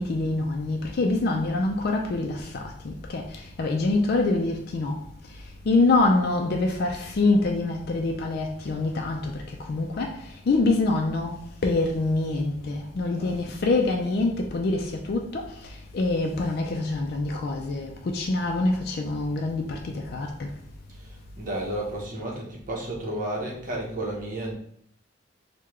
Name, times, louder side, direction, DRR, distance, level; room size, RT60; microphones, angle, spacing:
voice 1, 0.0-3.2 3.6-5.0 5.7-10.2 10.5-11.4 11.6-15.5 15.9-20.5, left 2 dB, 55° left, 0.4 m, -25 dB
voice 2, 20.9-24.5, right 1 dB, 45° right, 0.9 m, -32 dB
3.6 x 2.2 x 3.0 m
head